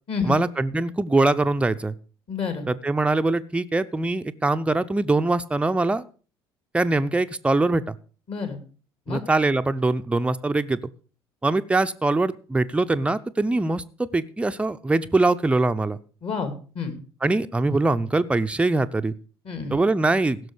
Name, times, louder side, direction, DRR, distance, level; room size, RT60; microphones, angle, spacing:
voice 1, 0.2-1.9 2.7-6.0 6.7-8.0 9.1-10.8 11.4-16.0 17.2-19.1 19.7-20.4, right 2 dB, 10° right, 10 dB, 0.6 m, -23 dB
voice 2, 2.3-2.7 8.3-8.6 9.1-9.2 16.2-17.0 19.4-19.8, left 5 dB, 45° left, 7 dB, 2.6 m, -29 dB
16.0 x 6.2 x 4.9 m, 0.38 s
figure-of-eight pair, 60°, 13 cm